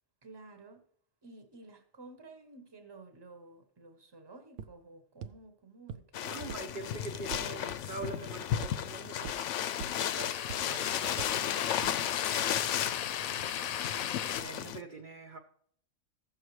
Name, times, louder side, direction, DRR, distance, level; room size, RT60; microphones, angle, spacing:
voice 1, 0.2-0.8 1.2-6.4 13.3-14.5, right 3 dB, 20° right, 0.9 m, -53 dB
sound 1, 4.6-4.7 5.2-5.3 5.9-6.0 6.5-6.6 7.0-7.4 8.0-8.1 8.6-8.7 9.2-9.3 9.8-9.9 10.5-10.6 11.2-11.3 11.8-11.9, right 6 dB, 70° right, 0.9 m, -40 dB
sound 2, 6.1-14.8, left 10 dB, 70° left, 0.8 m, -34 dB
voice 2, 6.2-9.4 10.0-11.7 14.2-15.4, right 3 dB, 45° right, 0.8 m, -44 dB
sound 3, 9.2-14.4, left 10 dB, 90° left, 1.0 m, -37 dB
15.5 x 6.4 x 3.1 m
omnidirectional pair, 1.4 m